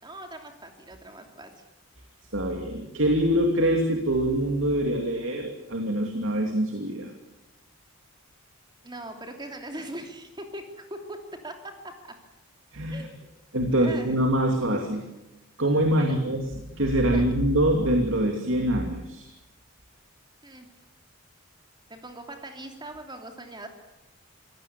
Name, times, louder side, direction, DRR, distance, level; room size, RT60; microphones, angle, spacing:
voice 1, 0.0-1.6 8.8-11.2 11.4-11.5 11.8-12.1 12.9-13.3 13.7-14.2 16.0-16.2 17.1-17.2 20.4-20.7 21.9-23.7, right 1 dB, 20° right, 4 dB, 3.0 m, -40 dB
voice 2, 2.3-7.1 12.7-13.1 13.5-15.0 15.6-19.3, right 1 dB, 65° right, 3 dB, 2.8 m, -24 dB
25.5 x 17.0 x 8.4 m, 0.97 s
head